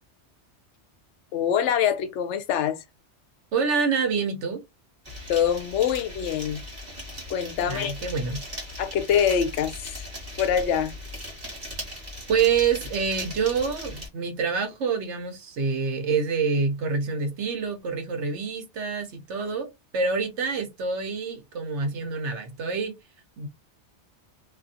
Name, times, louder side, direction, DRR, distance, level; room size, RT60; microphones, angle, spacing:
voice 1, 1.3-2.8 5.3-6.6 7.3-7.9 8.8-10.1 10.4-10.9, left 8 dB, 80° left, 0.9 m, -24 dB
voice 2, 3.5-4.6 7.6-8.4 12.3-23.0 23.4-23.5, right 5 dB, 80° right, 1.1 m, -27 dB
sound 1, 5.1-14.1, left 1 dB, 35° right, 1.6 m, -38 dB
2.7 x 2.5 x 2.6 m
omnidirectional pair, 1.2 m